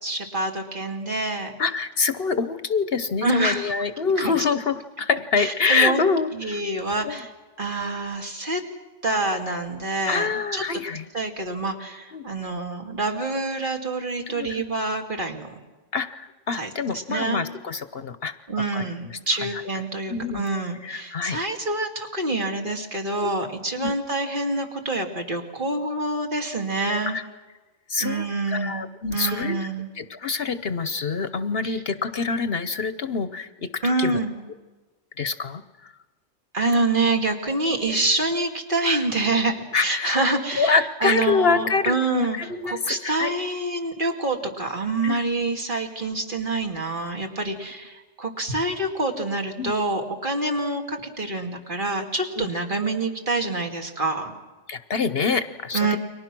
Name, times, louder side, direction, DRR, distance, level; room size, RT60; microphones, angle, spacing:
voice 1, 0.0-1.5 3.2-3.7 4.2-4.3 5.4-6.0 6.4-7.3 7.6-8.6 9.0-10.6 11.1-15.5 16.5-17.5 18.5-27.2 28.0-29.9 31.6-31.8 33.8-34.4 36.5-40.8 41.0-42.4 42.6-54.3 55.7-56.0, right 2 dB, 45° right, 3 dB, 2.6 m, -26 dB
voice 2, 1.6-6.6 7.0-7.2 10.1-11.1 12.1-12.3 14.2-14.6 15.9-18.3 18.7-19.2 19.5-19.6 20.1-20.4 20.8-21.4 23.8-23.9 27.1-27.2 27.9-29.5 30.0-34.2 35.2-35.9 39.7-40.3 40.6-43.3 45.0-45.3 49.6-49.7 52.3-52.5 54.7-56.0, left 5 dB, 55° left, 12 dB, 1.1 m, -26 dB
29.5 x 23.5 x 6.1 m, 1.2 s
omnidirectional pair, 1.2 m